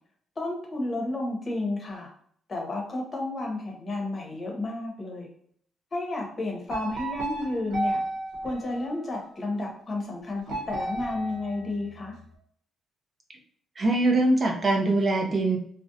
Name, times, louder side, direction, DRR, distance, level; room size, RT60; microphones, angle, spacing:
voice 1, 0.4-2.1 2.5-5.3 5.9-8.0 8.4-12.2, left 2 dB, 35° left, 0 dB, 0.8 m, -32 dB
sound 1, 6.7-9.4 10.5-12.2, right 1 dB, 85° right, 0.8 m, -33 dB
voice 2, 13.8-15.6, right 2 dB, 40° right, 2 dB, 0.4 m, -22 dB
2.5 x 2.0 x 2.6 m, 0.62 s
cardioid pair, 90°, 0 cm